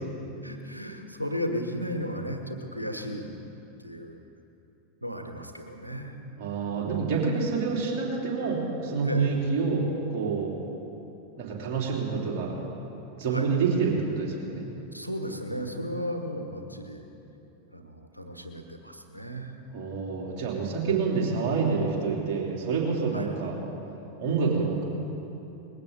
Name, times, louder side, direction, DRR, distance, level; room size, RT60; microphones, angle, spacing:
voice 1, 0.4-3.3 3.8-4.2 5.0-6.2 9.0-9.3 13.3-13.5 14.9-17.0 17.7-19.5 23.1-23.3, equal, 90° right, 5 dB, 1.3 m, -35 dB
voice 2, 6.4-10.5 11.4-12.5 13.1-14.6 19.7-23.6 24.2-24.8, right 5 dB, 45° right, -3 dB, 3.5 m, -27 dB
20.5 x 16.0 x 4.1 m, 3.0 s
figure-of-eight pair, 90°, 0 cm